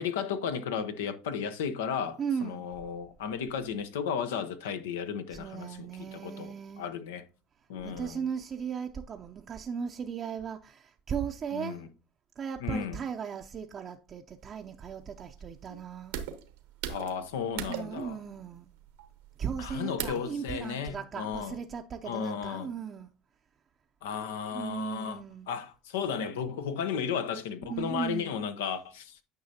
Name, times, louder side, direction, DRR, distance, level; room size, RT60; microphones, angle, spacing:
voice 1, 0.0-7.2 7.7-8.2 11.5-11.9 12.6-13.0 16.9-18.2 19.6-21.5 22.0-22.7 24.0-29.1, left 7 dB, 90° left, 0.9 m, -34 dB
voice 2, 2.2-2.7 5.3-6.9 7.8-11.8 12.4-16.2 17.7-18.7 19.4-23.1 24.5-25.5 27.6-28.4, right 7 dB, 35° right, 0.6 m, -37 dB
sound 1, 14.4-20.4, right 9 dB, 85° right, 1.1 m, -41 dB
9.5 x 5.5 x 2.8 m
supercardioid pair, 100°, 0 cm